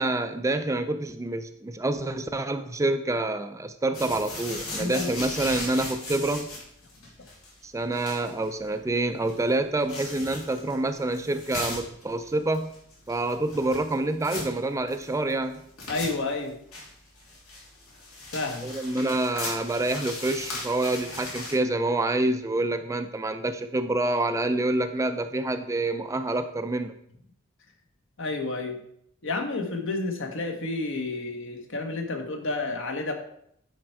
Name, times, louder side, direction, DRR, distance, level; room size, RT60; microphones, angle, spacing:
voice 1, 0.0-6.5 7.6-12.8 13.1-15.6 18.6-26.9, right 2 dB, 15° right, 9 dB, 0.3 m, -27 dB
sound 1, 3.9-21.5, left 2 dB, 85° left, 2.8 m, -38 dB
voice 2, 4.8-5.1 15.9-16.6 18.3-18.7 28.2-28.8 29.2-33.1, left 3 dB, 60° left, 4 dB, 1.3 m, -30 dB
10.0 x 4.5 x 4.6 m, 0.72 s
head